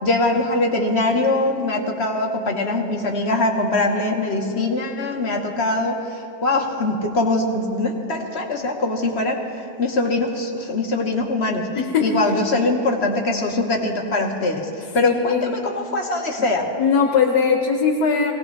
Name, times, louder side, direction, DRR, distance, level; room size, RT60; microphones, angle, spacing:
voice 1, 0.0-11.7 12.0-16.7, left 2 dB, 45° left, 1 dB, 1.4 m, -22 dB
voice 2, 11.7-12.2 15.0-15.5 16.8-18.3, left 6 dB, 80° left, 3 dB, 1.5 m, -19 dB
20.5 x 17.5 x 3.3 m, 2.6 s
omnidirectional pair, 1.7 m